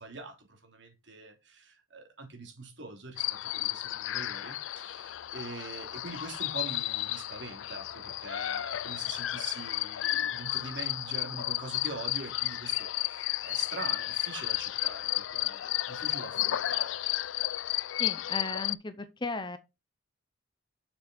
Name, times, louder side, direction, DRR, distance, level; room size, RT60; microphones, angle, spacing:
voice 1, 0.0-17.0, right 3 dB, 65° right, 3.0 m, -44 dB
sound 1, 3.2-18.7, left 14 dB, 80° left, 0.4 m, -33 dB
voice 2, 18.0-19.6, left 3 dB, 25° left, 0.8 m, -36 dB
6.9 x 6.8 x 4.3 m
head